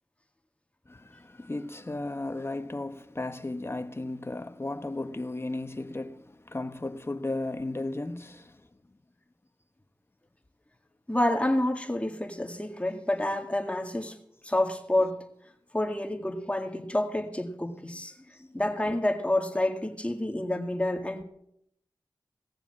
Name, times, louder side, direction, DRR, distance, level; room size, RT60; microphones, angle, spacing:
voice 1, 0.9-8.7 18.3-18.4, left 2 dB, 30° left, 1.1 m, -35 dB
voice 2, 11.1-14.2 14.4-15.2 15.7-18.1 18.5-21.2, left 1 dB, 15° left, 2.0 m, -28 dB
17.0 x 7.1 x 7.7 m
wide cardioid pair, 50°, 8 cm